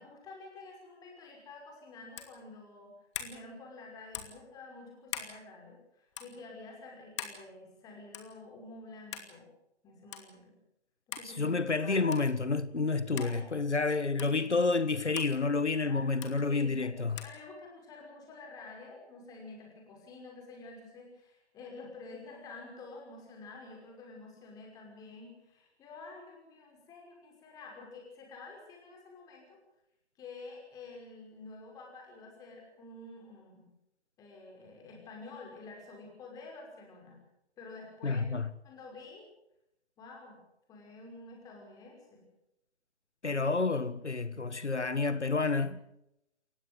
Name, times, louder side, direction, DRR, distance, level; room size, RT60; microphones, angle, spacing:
voice 1, 0.0-2.9 3.2-9.5 9.8-10.6 11.1-12.2 13.2-13.5 15.8-29.6 30.2-33.7 34.2-37.2 37.6-38.2 38.6-39.3 40.0-40.4 40.7-42.2, left 3 dB, 10° left, 5.7 m, -49 dB
sound 1, 2.1-2.4 3.1-3.4 4.1-4.4 5.1-5.3 6.1-6.3 7.2-7.4 8.1-8.4 9.1-9.3 10.1-10.2 11.1-11.3 12.1-12.3 13.2-13.3 14.2-14.3 15.1-15.3 16.2-16.3 17.2-17.3, left 9 dB, 25° left, 2.6 m, -41 dB
voice 2, 11.2-17.2 38.0-38.5 43.2-45.8, left 3 dB, 80° left, 1.5 m, -29 dB
28.5 x 15.5 x 8.0 m
figure-of-eight pair, 145°, 34 cm